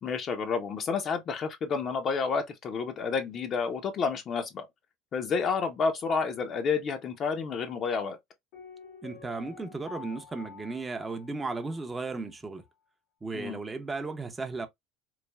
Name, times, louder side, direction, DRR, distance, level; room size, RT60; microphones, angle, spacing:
voice 1, 0.0-4.7 5.1-8.2 13.3-13.6, left 5 dB, 45° left, 0.6 m, -30 dB
Piano, 8.5-12.3 12.6-12.7, left 7 dB, 70° left, 1.0 m, -49 dB
voice 2, 9.0-12.6 13.2-14.7, right 3 dB, 15° right, 0.6 m, -35 dB
3.2 x 2.1 x 2.2 m
supercardioid pair, 95°, 0 cm